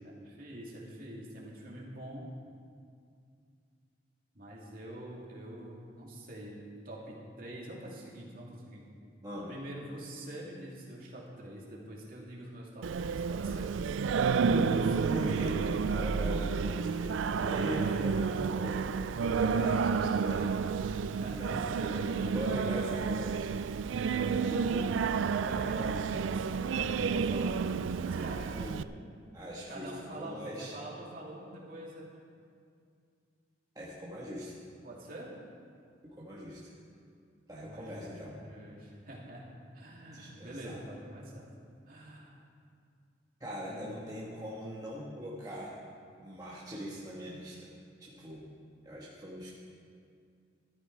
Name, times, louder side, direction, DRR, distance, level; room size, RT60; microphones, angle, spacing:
voice 1, 0.0-2.3 4.3-8.8 9.5-13.8 20.8-22.1 24.4-24.9 25.4-28.6 29.7-32.1 34.8-35.3 37.6-41.5 41.9-42.4 43.7-44.4, right 1 dB, 45° right, -4 dB, 2.6 m, -45 dB
Singing, 12.8-28.8, right 5 dB, 90° right, 0.4 m, -30 dB
voice 2, 14.4-20.6 21.3-23.7 24.1-24.4 25.7-26.0 27.3-27.5 28.5-28.8 29.3-29.9 30.2-30.7 33.7-34.6 36.0-36.6 37.5-38.4 40.1-40.8 43.4-45.8 46.2-47.7 48.0-48.5 48.8-49.5, equal, 20° right, -6 dB, 1.4 m, -41 dB
13.5 x 12.5 x 4.7 m, 2.3 s
head